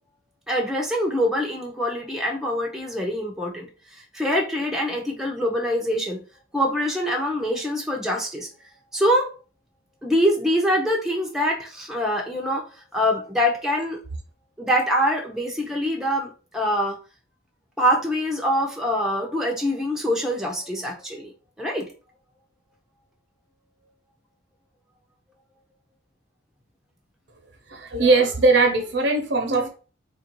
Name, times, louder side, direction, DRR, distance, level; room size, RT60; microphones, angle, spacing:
voice 1, 0.5-3.7 4.1-6.2 6.5-8.5 8.9-9.3 10.0-12.6 12.9-14.0 14.6-17.0 17.8-21.3 21.6-21.9, equal, 5° right, 0 dB, 0.7 m, -24 dB
voice 2, 27.7-29.7, right 3 dB, 60° right, 4 dB, 0.9 m, -20 dB
3.4 x 2.6 x 4.5 m, 0.36 s
head